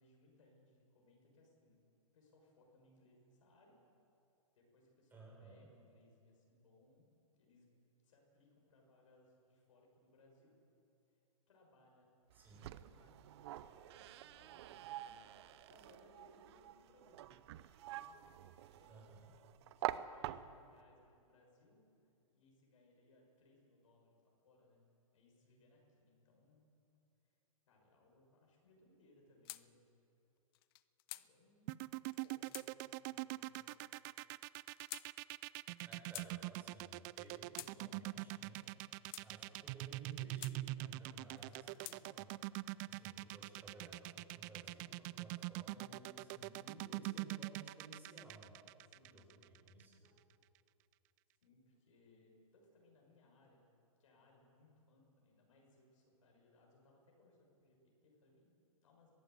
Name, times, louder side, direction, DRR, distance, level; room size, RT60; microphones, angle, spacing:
voice 1, 0.0-1.8 2.1-3.8 4.5-7.1 7.3-7.7 8.0-10.6 11.0-11.2 11.5-12.1 12.5-17.4 17.9-19.1 19.7-21.9 22.3-24.2 24.4-24.8 25.1-26.6 27.7-29.8 31.1-31.7 32.2-33.7 36.0-36.1 41.3-41.6 48.8-49.5 51.4-53.7 54.0-59.1, left 2 dB, 65° left, 0 dB, 6.3 m, -69 dB
voice 2, 5.1-5.7 12.3-12.7 18.9-19.3 35.8-38.6 39.2-42.4 42.9-48.6 49.0-50.2, right 2 dB, 10° right, -2 dB, 7.1 m, -57 dB
sound 1, 12.3-20.8, right 13 dB, 50° right, 0.8 m, -47 dB
sound 2, 29.4-29.6 30.5-31.3 32.1-32.7 33.5-34.0 34.8-35.1 35.8-36.3 37.2-37.7 38.6-39.3 40.0-40.6 41.4-42.0, left 19 dB, 40° left, 0.6 m, -50 dB
sound 3, 31.7-49.8, right 20 dB, 30° right, 0.4 m, -43 dB
21.5 x 15.5 x 7.9 m, 2.7 s
hypercardioid pair, 125°, 18 cm